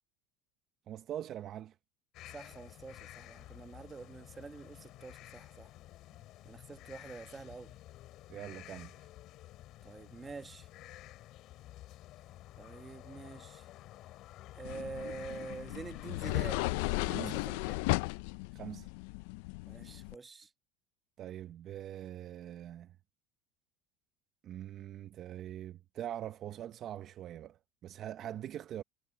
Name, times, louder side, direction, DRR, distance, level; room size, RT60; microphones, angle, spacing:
voice 1, 0.9-1.8 8.3-9.1 17.1-17.4 18.5-18.9 21.2-23.0 24.4-28.8, right 11 dB, 40° right, 0.7 m, -43 dB
sound 1, 2.1-16.4, left 15 dB, 50° left, 2.6 m, -52 dB
voice 2, 2.3-5.7 6.4-7.8 9.8-10.7 12.6-13.7 14.5-17.8 19.7-20.5 28.2-28.3, right 4 dB, 15° right, 1.2 m, -47 dB
sound 2, 14.6-20.1, left 24 dB, 75° left, 0.3 m, -35 dB
supercardioid pair, 140°, 0 cm